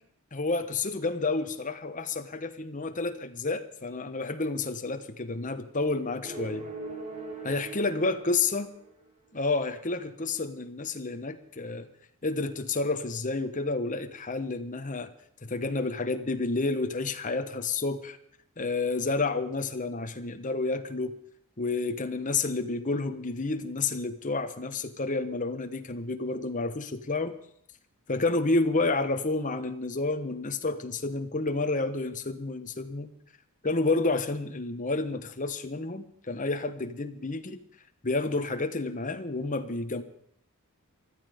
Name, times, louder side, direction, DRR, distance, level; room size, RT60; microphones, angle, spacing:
voice 1, 0.3-6.7 7.4-8.7 9.3-11.9 12.2-15.1 15.4-18.2 18.6-21.1 21.6-27.4 28.1-33.1 33.6-37.6 38.0-40.0, left 3 dB, 35° left, 8 dB, 1.2 m, -30 dB
sound 1, 6.2-9.1, right 3 dB, 30° right, 3.3 m, -41 dB
20.0 x 13.0 x 5.1 m, 0.68 s
head